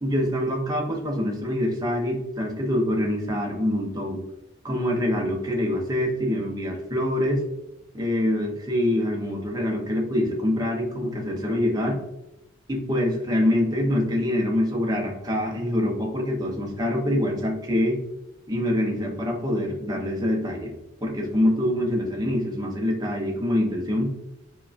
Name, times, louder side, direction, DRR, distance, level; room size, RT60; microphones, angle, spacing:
voice 1, 0.0-4.2 4.6-7.4 7.9-12.0 12.7-18.0 18.5-20.7 21.0-24.1, left 1 dB, 20° right, 0 dB, 0.7 m, -25 dB
4.7 x 2.3 x 2.4 m, 0.92 s
head